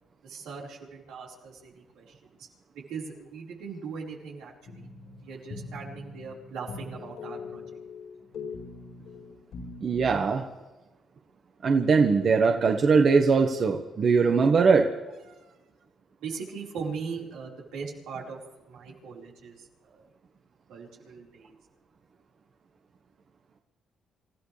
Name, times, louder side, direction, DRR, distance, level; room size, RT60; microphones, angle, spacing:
voice 1, 0.2-2.5 2.9-4.9 5.2-7.6 15.3-15.5 16.2-18.4 18.7-20.0 20.7-21.5, right 5 dB, 90° right, -3 dB, 4.8 m, -40 dB
sound 1, 4.7-10.2, left 4 dB, 70° left, 4.5 m, -42 dB
voice 2, 9.8-10.4 11.6-14.9, right 5 dB, 50° right, 3 dB, 1.4 m, -21 dB
28.0 x 15.0 x 3.4 m, 1.1 s
cardioid pair, 90°, 0 cm